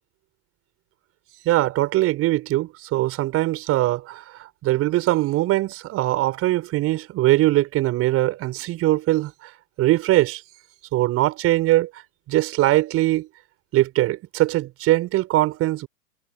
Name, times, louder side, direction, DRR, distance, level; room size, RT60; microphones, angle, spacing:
voice 1, 1.4-9.5 9.8-10.4 10.9-11.9 12.3-13.3 13.7-15.9, right 16 dB, 30° right, 5.9 m, -21 dB
hypercardioid pair, 115°, 44 cm